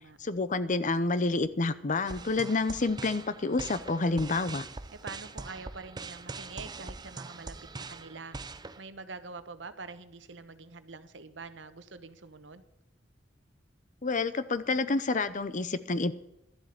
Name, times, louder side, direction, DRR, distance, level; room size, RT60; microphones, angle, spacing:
voice 1, 0.2-4.7 14.0-16.1, left 3 dB, 45° left, 0.7 m, -29 dB
sound 1, 2.1-8.8, right 3 dB, 25° right, 0.6 m, -43 dB
voice 2, 5.0-8.4 8.8-12.6, right 4 dB, 75° right, 1.1 m, -45 dB
12.5 x 7.7 x 8.5 m
head